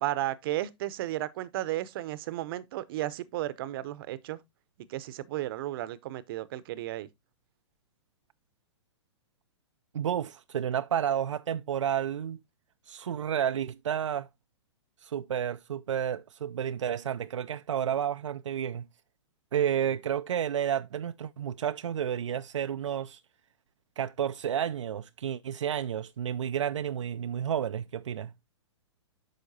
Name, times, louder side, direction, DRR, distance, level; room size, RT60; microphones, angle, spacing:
voice 1, 0.0-4.4 4.9-7.1, right 15 dB, 50° right, 0.7 m, -34 dB
voice 2, 9.9-12.4 12.9-14.3 15.0-18.8 19.5-23.2 24.0-28.3, right 9 dB, 80° right, 0.4 m, -31 dB
9.1 x 6.3 x 2.7 m
hypercardioid pair, 115°, 16 cm